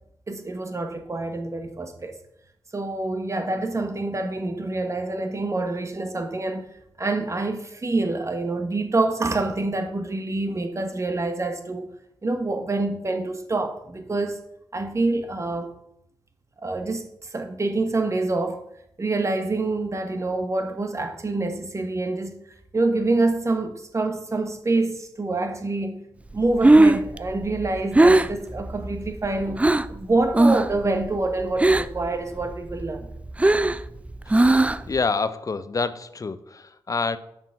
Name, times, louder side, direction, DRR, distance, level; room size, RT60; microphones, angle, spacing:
voice 1, 0.3-2.2 2.7-6.6 7.0-11.9 12.2-14.4 14.7-15.7 16.6-18.6 19.0-22.4 22.7-26.1 26.3-33.1, right 2 dB, 35° right, 1.3 m, -26 dB
Breathing, 26.4-30.0 30.3-30.8 31.0-32.1 32.4-35.0, right 2 dB, 15° right, 0.4 m, -18 dB
voice 2, 34.9-37.2, left 4 dB, 40° left, 0.6 m, -27 dB
7.1 x 5.9 x 5.8 m
cardioid pair, 60°, 9 cm